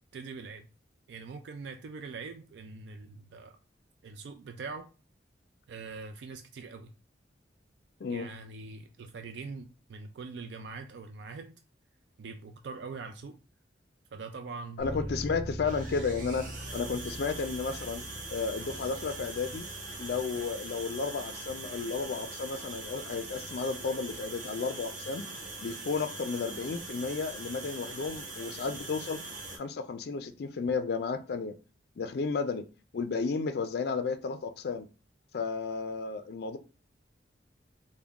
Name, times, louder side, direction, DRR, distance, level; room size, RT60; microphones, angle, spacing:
voice 1, 0.1-0.7 1.1-3.6 4.0-4.9 5.7-6.9 8.1-11.5 12.2-13.4 14.1-15.2, right 4 dB, 70° right, 0.3 m, -43 dB
voice 2, 14.8-18.0 18.3-19.6 20.0-25.2 25.6-31.6 32.0-32.7 32.9-34.9 35.3-36.6, left 4 dB, 60° left, 0.3 m, -33 dB
Bass guitar, 14.8-24.5, equal, 5° right, 1.1 m, -44 dB
sound 1, 15.6-29.6, right 2 dB, 45° right, 0.7 m, -42 dB
3.6 x 2.1 x 3.4 m
head